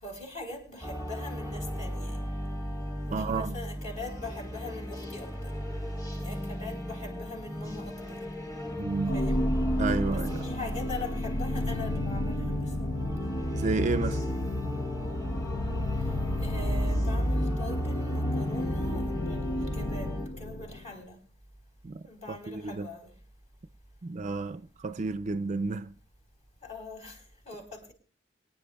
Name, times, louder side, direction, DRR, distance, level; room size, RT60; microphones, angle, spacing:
voice 1, 0.0-2.3 3.1-5.5 6.1-8.3 9.1-9.4 10.1-12.9 16.4-21.2 22.0-23.1 26.6-27.9, left 2 dB, 40° left, 4.2 m, -42 dB
sound 1, 0.8-20.3, equal, 20° left, 2.2 m, -35 dB
voice 2, 3.1-3.6 8.8-9.3 9.8-10.5 13.5-14.2 21.8-22.0 22.3-22.9 24.0-25.9, right 3 dB, 40° right, 0.5 m, -31 dB
sound 2, 9.1-21.0, left 1 dB, 85° left, 0.9 m, -31 dB
24.0 x 10.5 x 2.3 m
head